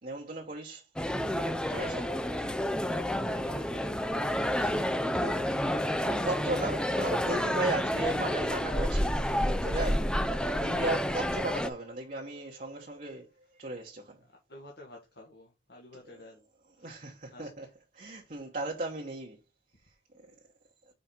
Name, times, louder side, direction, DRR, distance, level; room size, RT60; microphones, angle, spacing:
voice 1, 0.0-0.9 1.7-2.1 4.6-4.9 5.2-10.1 10.6-13.3 13.6-14.2 16.8-17.7 17.9-19.4 20.1-20.3, right 2 dB, 45° right, 1.1 m, -36 dB
sound 1, 1.0-11.7, equal, 5° left, 0.4 m, -29 dB
sound 2, 1.7-13.9, equal, 65° right, 1.2 m, -54 dB
voice 2, 3.1-6.3 14.2-16.5 16.8-17.7, left 1 dB, 60° left, 1.5 m, -51 dB
5.4 x 4.9 x 4.4 m
head